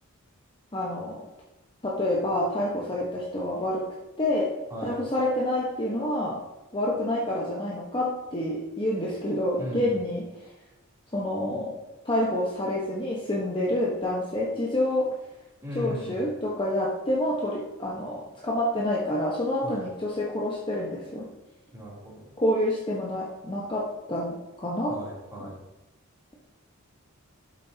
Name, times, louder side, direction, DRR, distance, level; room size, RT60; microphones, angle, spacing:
voice 1, 0.7-1.2 1.8-3.9 4.2-4.5 4.8-6.4 6.7-10.3 11.1-11.7 12.0-15.1 15.7-21.3 22.4-25.0, left 1 dB, 25° left, -3 dB, 1.3 m, -28 dB
voice 2, 4.7-5.0 9.6-9.9 15.6-16.3 19.6-19.8 21.7-22.3 24.9-25.6, equal, 15° right, -6 dB, 3.3 m, -37 dB
12.5 x 7.6 x 2.9 m, 1.0 s
head